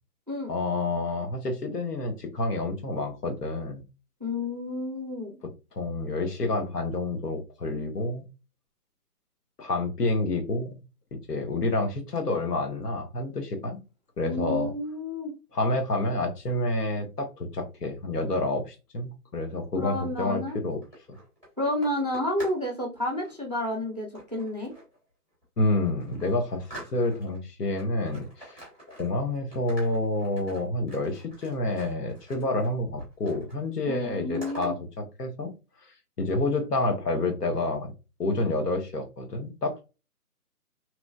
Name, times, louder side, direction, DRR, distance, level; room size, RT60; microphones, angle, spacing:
voice 1, 0.5-3.9 5.7-8.3 9.6-10.8 11.3-13.8 14.2-14.7 15.5-20.8 25.6-28.6 29.0-35.5 35.8-37.9 38.2-39.8, left 2 dB, 85° left, 1.0 m, -28 dB
voice 2, 4.2-5.4 14.2-15.3 19.8-20.6 21.6-24.7 33.9-34.7, left 1 dB, 30° right, 0.4 m, -30 dB
sound 1, 20.7-22.7 23.0-23.3 24.1-25.0 25.4-25.5 25.8-27.4 27.8-29.3 29.5-32.7 33.0-33.6 33.8-34.7, equal, 5° left, 0.9 m, -45 dB
2.9 x 2.1 x 2.6 m
figure-of-eight pair, 145°, 46 cm